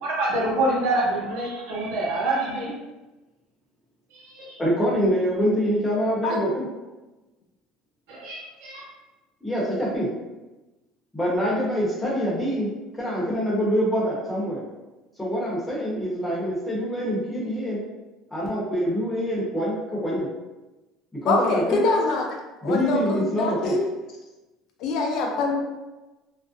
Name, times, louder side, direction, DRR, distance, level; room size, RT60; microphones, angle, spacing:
voice 1, 0.0-2.7 4.1-4.6 8.1-8.8, right 2 dB, 80° right, -4 dB, 0.8 m, -26 dB
voice 2, 4.6-6.6 9.4-10.1 11.1-14.6 15.2-17.8 18.3-20.3 21.2-21.8 22.6-23.8, equal, 10° left, -6 dB, 0.9 m, -25 dB
voice 3, 21.2-22.3 22.6-23.8 24.8-25.6, left 3 dB, 65° left, 1 dB, 0.4 m, -24 dB
2.5 x 2.0 x 2.5 m, 1.1 s
cardioid pair, 115°, 0 cm